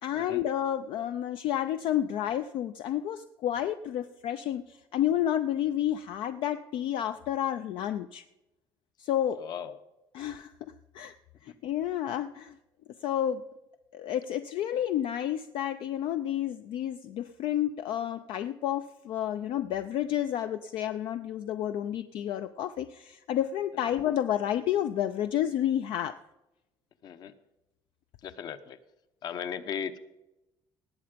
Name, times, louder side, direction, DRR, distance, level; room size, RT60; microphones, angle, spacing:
voice 1, 0.0-8.2 9.0-9.7 10.1-11.1 11.4-12.6 13.0-13.4 13.9-26.2, left 11 dB, 65° left, 10 dB, 0.5 m, -30 dB
voice 2, 9.4-9.7 11.5-11.6 27.0-27.3 28.2-28.8 29.2-30.0, left 7 dB, 50° left, 12 dB, 0.9 m, -37 dB
19.0 x 7.8 x 5.2 m, 0.96 s
cardioid pair, 155°, 9 cm